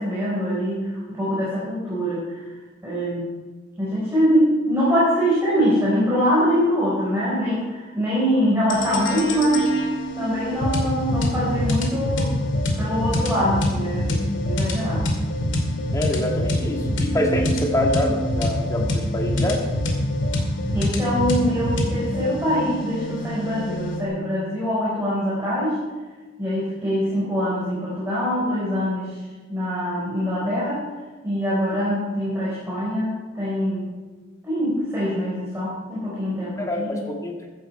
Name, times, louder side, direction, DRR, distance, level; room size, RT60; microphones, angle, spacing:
voice 1, 0.0-2.4 2.8-3.3 3.8-9.7 10.2-12.3 12.8-15.1 20.7-25.8 26.4-29.1 29.5-30.8 31.2-33.9 34.4-37.0, equal, 15° right, -9 dB, 4.4 m, -23 dB
sound 1, 8.7-24.1, left 1 dB, 70° left, 2.4 m, -25 dB
voice 2, 15.9-19.6 36.6-37.5, left 1 dB, 15° left, 1 dB, 1.9 m, -25 dB
14.5 x 10.5 x 4.4 m, 1.3 s
head